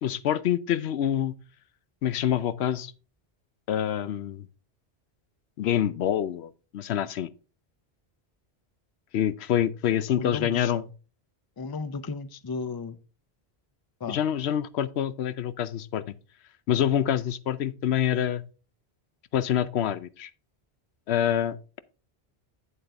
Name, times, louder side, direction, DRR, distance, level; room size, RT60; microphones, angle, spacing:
voice 1, 0.0-1.3 2.0-2.9 3.7-4.5 5.6-7.3 9.1-10.9 14.1-16.0 16.7-18.4 19.3-20.3 21.1-21.8, left 10 dB, 90° left, 0.9 m, -26 dB
voice 2, 10.1-10.7 11.6-13.0 14.0-14.2, left 4 dB, 30° left, 0.4 m, -34 dB
8.0 x 7.8 x 3.4 m
omnidirectional pair, 1.1 m